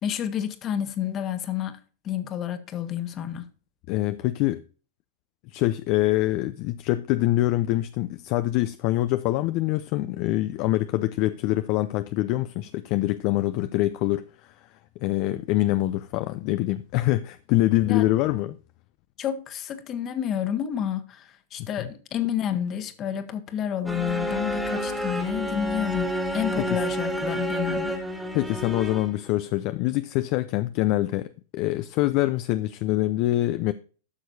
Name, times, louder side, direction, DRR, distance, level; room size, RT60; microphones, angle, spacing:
voice 1, 0.0-1.8 2.0-3.5 17.8-18.1 19.2-28.0, left 9 dB, 35° left, 1.3 m, -30 dB
voice 2, 3.9-4.6 5.5-14.5 15.0-18.6 21.6-21.9 26.6-26.8 28.3-33.7, left 16 dB, 50° left, 0.5 m, -25 dB
sound 1, 23.9-29.3, equal, ahead, 1.8 m, -29 dB
12.0 x 6.4 x 2.7 m
hypercardioid pair, 110°, 0 cm